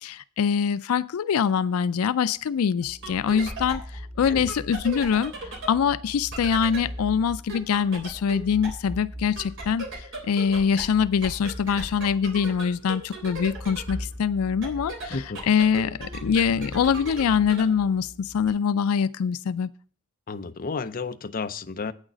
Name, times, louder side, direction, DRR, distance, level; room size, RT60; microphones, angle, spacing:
voice 1, 0.0-15.2 15.5-19.7, left 7 dB, 90° left, 0.4 m, -24 dB
sound 1, 2.8-18.5, right 1 dB, 60° right, 3.3 m, -38 dB
voice 2, 20.3-21.9, left 4 dB, 45° left, 0.6 m, -32 dB
8.8 x 6.5 x 6.1 m
head